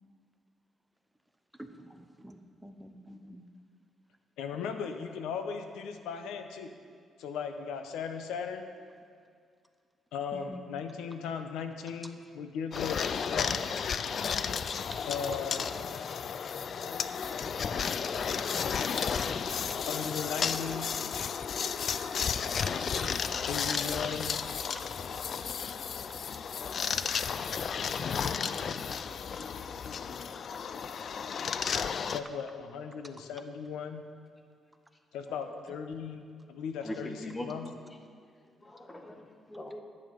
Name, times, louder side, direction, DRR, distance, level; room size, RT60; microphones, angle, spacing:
voice 1, 1.6-3.4 10.3-10.6 14.9-15.0 23.0-23.1, right 1 dB, 5° right, 7 dB, 0.8 m, -47 dB
voice 2, 4.4-6.7 7.2-8.7 10.1-13.6 15.1-15.7 19.8-20.9 23.5-24.4 32.1-34.0 35.1-37.2 37.4-37.7, left 6 dB, 90° left, 7 dB, 0.9 m, -37 dB
sound 1, 12.7-32.2, left 6 dB, 55° left, 0.4 m, -33 dB
voice 3, 35.3-35.6 36.8-37.5 38.6-39.8, left 1 dB, 25° left, 5 dB, 1.2 m, -41 dB
11.0 x 9.1 x 5.3 m, 2.2 s
cardioid pair, 90°, 0 cm